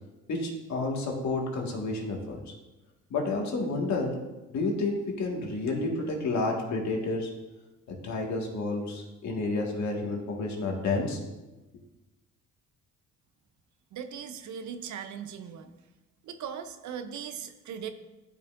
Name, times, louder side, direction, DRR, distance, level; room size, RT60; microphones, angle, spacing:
voice 1, 0.3-2.5 3.1-4.1 4.5-7.3 7.9-11.2, left 3 dB, 65° left, 0 dB, 1.8 m, -30 dB
voice 2, 13.9-15.7 16.2-17.9, right 7 dB, 70° right, 8 dB, 0.8 m, -39 dB
12.0 x 5.5 x 2.6 m, 1.1 s
cardioid pair, 90°, 30 cm